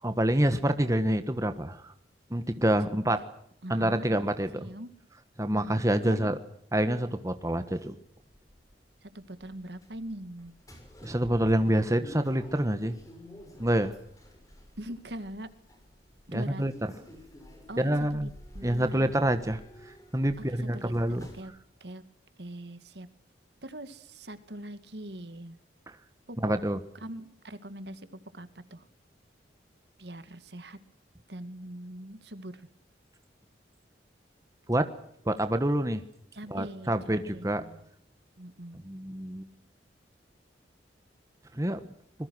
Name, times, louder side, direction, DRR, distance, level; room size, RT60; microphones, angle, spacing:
voice 1, 0.0-1.9 2.3-3.2 3.7-4.7 5.4-6.4 6.7-7.9 11.0-13.0 13.6-13.9 16.3-16.7 17.8-18.3 18.6-19.6 19.9-21.3 25.9-26.0 26.4-26.8 34.7-34.9 35.2-36.0 36.5-37.6 38.8-39.5 41.5-41.8, right 1 dB, 20° right, 9 dB, 1.3 m, -27 dB
voice 2, 3.6-4.9 5.5-6.3 9.0-10.6 14.8-15.5 16.3-16.6 17.7-19.2 20.5-21.5 21.8-22.0 22.4-23.1 23.6-25.6 26.3-26.5 26.9-28.1 28.3-28.9 30.0-30.8 31.3-32.7 36.3-37.9 38.4-38.8, right 1 dB, 65° right, 12 dB, 2.0 m, -42 dB
sound 1, 7.1-21.4, equal, 20° left, 6.7 m, -51 dB
26.0 x 21.5 x 6.2 m, 0.73 s
head